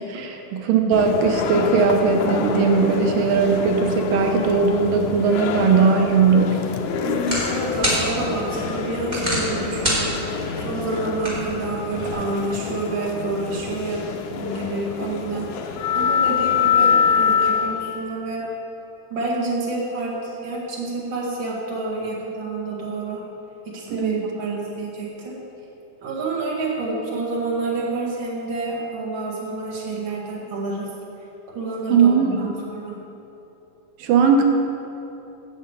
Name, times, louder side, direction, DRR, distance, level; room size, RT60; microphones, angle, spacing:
voice 1, 0.1-6.6 23.9-24.6 31.9-32.4 34.0-34.4, right 5 dB, 85° right, 3 dB, 2.5 m, -19 dB
sound 1, 0.9-18.1, left 6 dB, 75° left, 1.9 m, -26 dB
sound 2, 6.0-12.1, equal, 15° right, 2.8 m, -29 dB
voice 2, 7.0-18.4 19.1-23.2 23.7-25.4 26.0-30.9 31.5-33.0, right 2 dB, 40° right, -4 dB, 2.3 m, -28 dB
10.0 x 6.5 x 8.3 m, 3.0 s
omnidirectional pair, 3.7 m